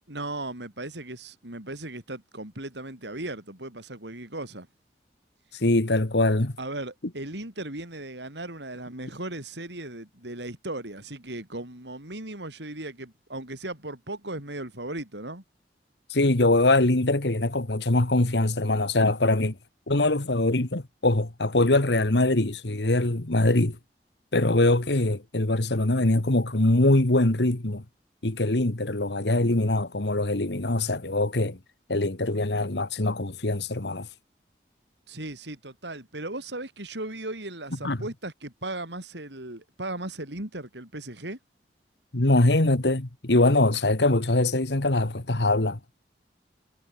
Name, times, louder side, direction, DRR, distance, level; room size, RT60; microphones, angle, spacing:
voice 1, 0.1-4.7 6.6-15.4 35.1-41.4, right 2 dB, 85° right, 6.4 m, -37 dB
voice 2, 5.6-6.5 16.1-19.6 19.9-23.8 24.3-27.8 28.2-31.6 31.9-34.1 37.8-38.0 42.1-45.8, left 2 dB, 80° left, 1.8 m, -23 dB
head